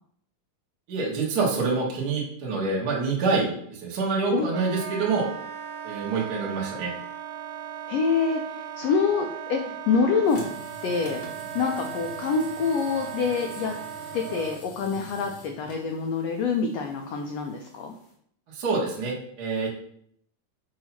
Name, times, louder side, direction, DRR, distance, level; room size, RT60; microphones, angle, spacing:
voice 1, 0.9-5.3 5.8-6.9 18.5-19.7, right 4 dB, 45° right, -3 dB, 1.3 m, -26 dB
Wind instrument woodwind instrument, 4.5-14.6, right 9 dB, 75° right, 2.2 m, -37 dB
voice 2, 7.9-10.4 10.8-11.2 11.5-13.7 14.1-17.9, left 5 dB, 85° left, 3 dB, 1.4 m, -26 dB
sound 1, 10.2-18.1, right 1 dB, 55° left, 0.8 m, -46 dB
6.9 x 2.8 x 5.7 m, 0.66 s
omnidirectional pair, 3.6 m